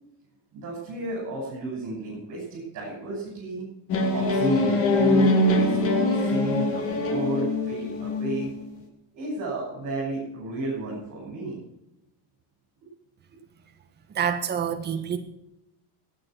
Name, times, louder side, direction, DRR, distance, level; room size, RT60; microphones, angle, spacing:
voice 1, 0.5-3.6 4.1-8.5 9.1-11.6, right 2 dB, 40° right, -4 dB, 6.7 m, -32 dB
sound 1, 3.9-8.6, left 2 dB, 30° left, 2.3 m, -23 dB
voice 2, 14.1-15.2, right 8 dB, 20° right, 6 dB, 1.5 m, -27 dB
18.0 x 9.6 x 6.2 m, 0.91 s
cardioid pair, 175°, 45 cm